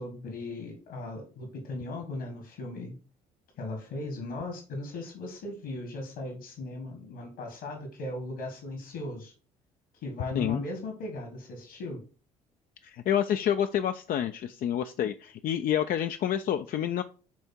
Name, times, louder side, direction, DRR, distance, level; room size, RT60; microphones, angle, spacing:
voice 1, 0.0-3.0 3.6-9.3 9.9-12.0, left 2 dB, 65° left, 3 dB, 1.9 m, -38 dB
voice 2, 12.8-17.0, left 10 dB, 50° left, 8 dB, 0.5 m, -28 dB
8.5 x 3.5 x 4.4 m, 0.36 s
hypercardioid pair, 50°, 19 cm